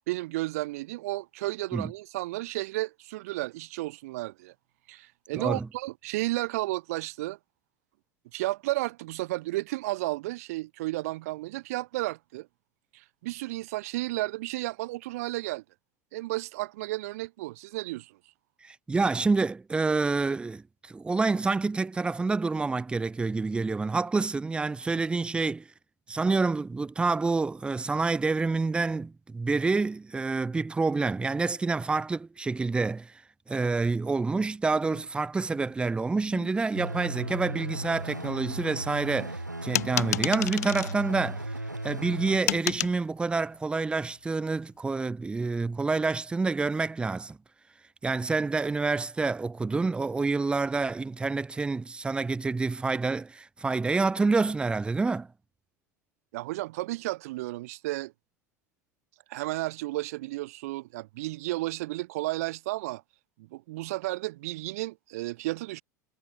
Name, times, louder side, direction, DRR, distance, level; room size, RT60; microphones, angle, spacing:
voice 1, 0.1-4.5 4.9-7.4 8.3-12.5 12.9-15.6 16.1-18.2 56.3-58.1 59.3-63.0 63.4-65.8, right 19 dB, 55° right, 1.7 m, -33 dB
voice 2, 5.3-5.7 18.6-25.6 26.1-33.1 33.5-41.4 41.8-47.4 48.0-55.3, right 3 dB, 10° right, 0.6 m, -28 dB
sound 1, 34.7-35.2 35.5-35.8 36.2-36.7 37.1-37.5 38.1-38.6 38.9-39.4 39.8-40.4 40.7-40.8, left 3 dB, 85° left, 5.9 m, -50 dB
sound 2, 36.7-42.4, right 1 dB, 90° right, 1.4 m, -36 dB
Dice Rolling, 39.7-40.9 42.5-43.0, left 13 dB, 65° left, 0.8 m, -29 dB
figure-of-eight pair, 80°, 9 cm